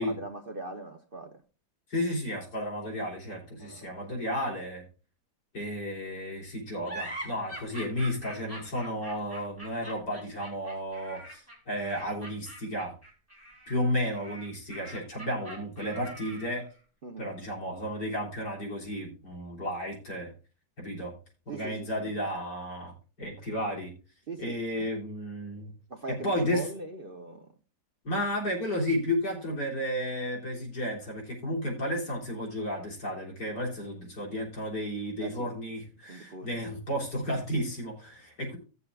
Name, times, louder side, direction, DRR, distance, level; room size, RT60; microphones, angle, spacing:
voice 1, 0.0-1.4 3.6-4.2 17.0-17.3 21.5-22.2 24.3-24.6 25.9-27.6 35.2-35.5 36.1-36.6, right 2 dB, 40° right, 0.9 m, -41 dB
voice 2, 1.9-4.9 5.5-12.9 13.7-16.7 17.2-20.3 20.8-21.1 21.5-23.9 24.4-25.7 26.1-26.6 28.0-38.6, equal, 80° left, 4.0 m, -33 dB
sound 1, 6.8-16.7, right 1 dB, 10° left, 3.3 m, -43 dB
17.0 x 6.9 x 2.4 m
omnidirectional pair, 1.8 m